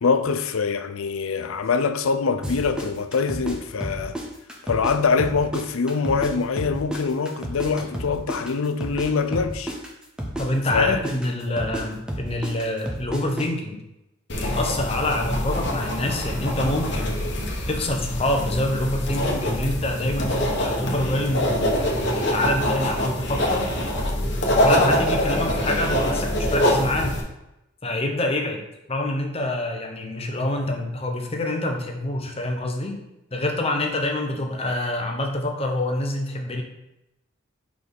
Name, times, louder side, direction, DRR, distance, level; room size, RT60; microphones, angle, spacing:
voice 1, 0.0-4.2 4.6-9.7 10.7-11.0 11.4-11.5, left 5 dB, 80° left, 0.5 m, -24 dB
sound 1, 2.4-4.9 5.2-9.1 9.3-13.5, right 1 dB, 5° right, 0.7 m, -31 dB
voice 2, 10.4-13.8 14.3-17.3 17.7-22.0 22.3-23.7 24.5-27.2 27.8-28.6 28.9-33.0 33.3-36.6, left 1 dB, 30° left, 0.9 m, -26 dB
sound 2, 14.3-27.2, equal, 55° left, 1.2 m, -24 dB
4.7 x 4.2 x 5.4 m
head